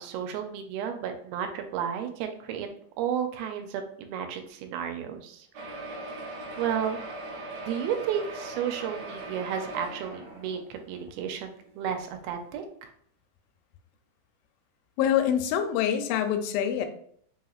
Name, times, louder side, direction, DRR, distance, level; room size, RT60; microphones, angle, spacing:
voice 1, 0.0-2.7 3.0-5.5 6.6-7.0 7.7-12.9, right 8 dB, 85° right, 6 dB, 2.4 m, -32 dB
sound 1, 5.5-11.0 11.7-11.8 12.0-12.1 12.5-12.6, right 2 dB, 70° right, 1.6 m, -39 dB
voice 2, 15.0-16.9, left 9 dB, 85° left, 7 dB, 2.3 m, -25 dB
5.5 x 3.0 x 2.3 m, 0.63 s
omnidirectional pair, 4.1 m